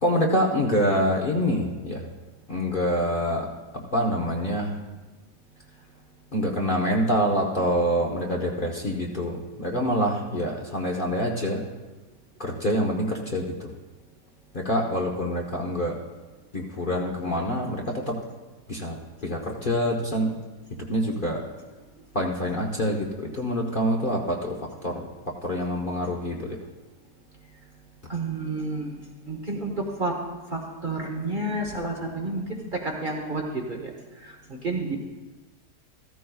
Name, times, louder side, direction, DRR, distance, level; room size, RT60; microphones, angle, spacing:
voice 1, 0.0-2.0 2.5-3.5 3.7-4.8 6.3-11.6 12.4-13.7 14.5-15.9 16.5-18.2 18.7-20.3 20.9-21.4 22.1-25.1 25.4-26.6, equal, 40° left, -2 dB, 1.0 m, -26 dB
voice 2, 28.1-29.0 29.3-30.1 30.5-33.9 34.2-35.0, right 2 dB, 35° right, 0 dB, 1.0 m, -30 dB
14.5 x 14.0 x 2.3 m, 1.2 s
omnidirectional pair, 1.7 m